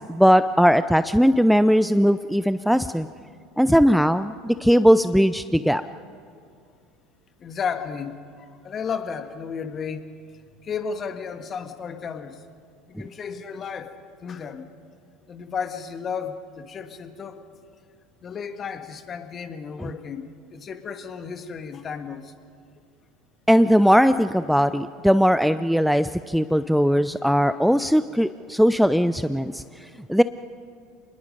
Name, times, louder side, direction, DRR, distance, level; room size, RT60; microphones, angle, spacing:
voice 1, 0.0-3.1 3.6-5.8 19.8-19.9 23.5-29.6 30.1-30.2, equal, ahead, 13 dB, 0.5 m, -19 dB
voice 2, 7.4-10.0 10.6-12.4 12.9-13.9 14.2-14.6 15.3-17.4 18.2-22.3, left 6 dB, 35° left, 8 dB, 1.6 m, -33 dB
26.0 x 21.0 x 5.3 m, 2.3 s
hypercardioid pair, 70°, 0 cm